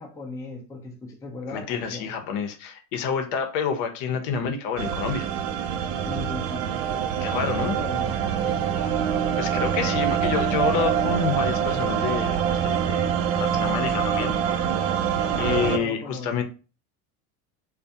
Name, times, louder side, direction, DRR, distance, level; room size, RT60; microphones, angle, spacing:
voice 1, 0.0-2.1 6.0-8.2 15.6-16.3, left 2 dB, 5° left, 0.5 m, -37 dB
voice 2, 1.5-5.3 7.2-7.7 9.4-12.4 12.6-13.0 13.3-14.8 15.4-16.4, left 6 dB, 60° left, 0.7 m, -28 dB
sound 1, 4.8-15.8, right 8 dB, 65° right, 0.6 m, -25 dB
2.3 x 2.2 x 2.7 m
hypercardioid pair, 90°, 44 cm